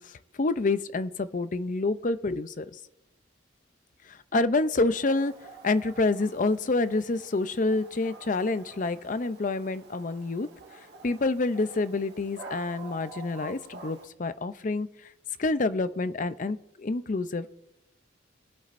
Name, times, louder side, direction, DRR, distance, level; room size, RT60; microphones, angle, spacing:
voice 1, 0.0-2.8 4.1-5.3 5.6-10.5 11.0-15.1 15.4-17.5, left 3 dB, 45° left, 13 dB, 0.5 m, -28 dB
Dog, 4.9-14.1, right 4 dB, 60° right, 1.6 m, -48 dB
22.5 x 8.4 x 2.6 m, 0.86 s
head